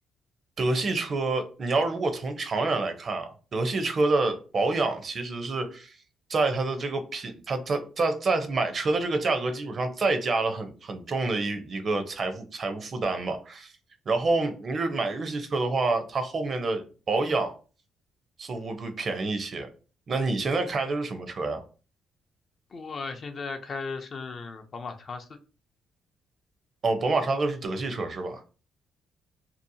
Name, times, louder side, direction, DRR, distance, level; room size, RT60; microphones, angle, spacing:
voice 1, 0.6-5.9 6.3-13.7 14.1-17.5 18.4-19.7 20.1-21.6 26.8-28.4, right 3 dB, 45° right, 0.6 m, -27 dB
voice 2, 22.7-25.4, left 4 dB, 50° left, 0.5 m, -36 dB
2.7 x 2.0 x 2.6 m
cardioid pair, 90°, 0 cm